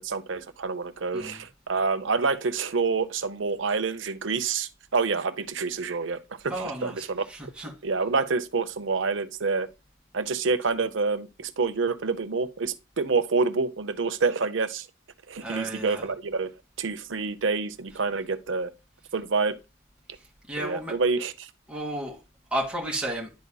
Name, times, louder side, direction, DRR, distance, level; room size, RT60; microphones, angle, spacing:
voice 1, 0.0-6.2 6.4-7.2 7.8-9.7 10.1-14.9 15.3-16.5 16.8-18.7 19.1-19.6 20.6-21.5, right 4 dB, 75° right, 0.7 m, -27 dB
voice 2, 6.5-7.7 15.4-16.1 20.5-20.9 21.7-22.2 22.5-23.3, right 1 dB, 5° right, 2.0 m, -33 dB
11.5 x 4.1 x 2.2 m
head